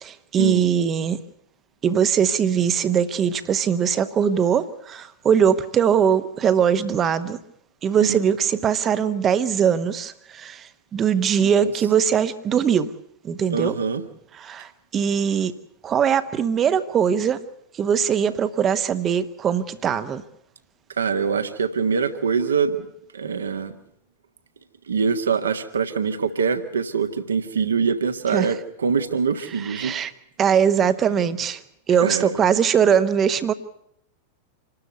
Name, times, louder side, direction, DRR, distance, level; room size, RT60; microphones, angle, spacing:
voice 1, 0.0-1.2 1.8-7.4 7.8-12.9 13.2-13.7 14.4-15.5 15.8-17.4 17.7-20.2 28.3-28.5 29.6-30.1 30.4-31.6 31.9-33.5, right 8 dB, 25° right, 1.1 m, -21 dB
voice 2, 11.4-11.7 13.5-14.0 21.0-22.8 23.1-23.7 24.9-29.9 32.0-32.4, right 6 dB, 70° right, 1.6 m, -24 dB
27.0 x 12.5 x 8.1 m
figure-of-eight pair, 90°, 0 cm